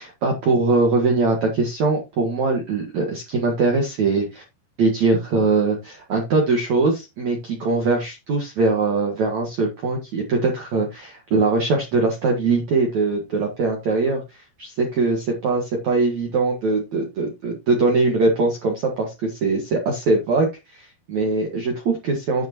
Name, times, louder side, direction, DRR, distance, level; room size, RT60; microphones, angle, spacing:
voice 1, 0.0-4.4 4.8-22.5, right 3 dB, 55° right, 1 dB, 2.1 m, -22 dB
9.8 x 9.0 x 3.0 m, 0.24 s
omnidirectional pair, 5.5 m